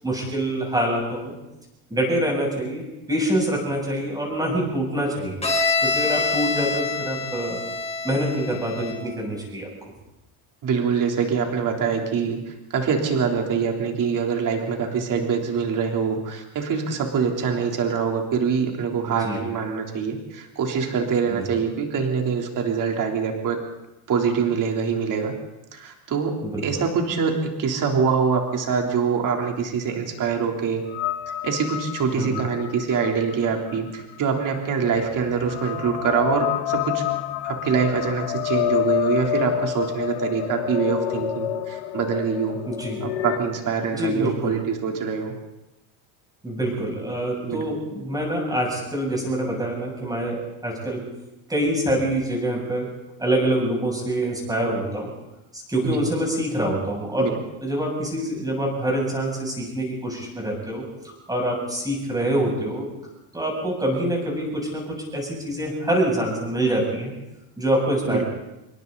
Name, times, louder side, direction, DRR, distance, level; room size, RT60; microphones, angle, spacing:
voice 1, 0.0-1.3 1.9-5.4 5.8-7.6 8.0-9.7 19.1-19.4 21.4-21.5 26.4-26.6 32.1-32.4 42.7-43.0 43.9-44.6 46.4-51.0 51.5-52.9 53.2-55.1 55.5-57.3 57.6-60.8 61.3-62.9 63.3-67.1 67.6-68.3, right 1 dB, 10° right, -1 dB, 7.6 m, -25 dB
Bowed string instrument, 5.4-9.2, left 3 dB, 15° left, 4.7 m, -26 dB
voice 2, 10.6-23.6 24.1-25.4 25.7-26.4 26.6-30.8 31.3-37.0 37.4-42.6 43.0-45.3 47.4-47.7 55.8-56.1 57.2-57.4 68.0-68.3, right 6 dB, 40° right, 2 dB, 3.7 m, -24 dB
sound 1, 30.9-43.4, left 13 dB, 80° left, 1.8 m, -28 dB
27.0 x 23.0 x 4.1 m, 0.93 s
cardioid pair, 145°, 48 cm